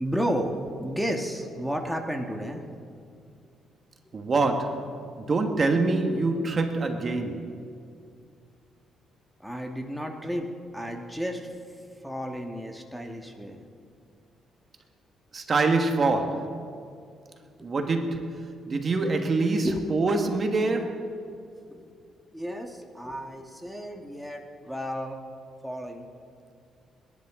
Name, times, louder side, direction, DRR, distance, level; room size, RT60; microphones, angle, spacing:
voice 1, 0.0-2.6 9.4-11.5 12.0-13.6 17.6-17.7 19.6-19.9 21.3-21.9 22.3-25.2 25.6-26.1, equal, ahead, 1.5 m, -32 dB
voice 2, 4.1-7.6 15.3-16.7 17.6-21.2, right 3 dB, 40° right, 1.4 m, -26 dB
29.5 x 11.0 x 3.7 m
cardioid pair, 90°, 0 cm